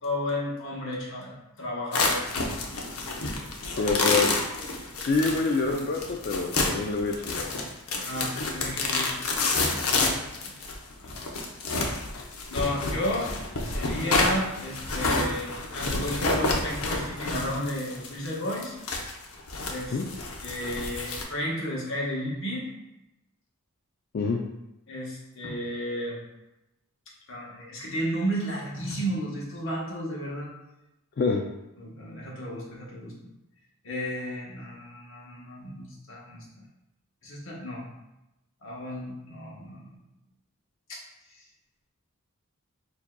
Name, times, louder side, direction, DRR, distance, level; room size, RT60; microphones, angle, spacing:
voice 1, 0.0-2.2 7.9-9.2 9.8-10.1 10.4-10.5 11.0-11.2 12.5-13.3 13.6-18.8 19.7-20.0 20.4-22.7 24.9-26.2 27.3-30.5 31.8-33.1 33.8-36.5 37.2-37.8 38.6-39.9 40.9-41.0, equal, 65° left, -3 dB, 1.1 m, -33 dB
sound 1, 1.9-21.2, left 3 dB, 85° left, 0.7 m, -29 dB
voice 2, 3.8-4.3 5.1-7.5 19.9-20.1 24.1-24.4 31.2-31.4, left 4 dB, 45° left, 1 dB, 0.4 m, -26 dB
7.0 x 2.7 x 2.2 m, 0.93 s
head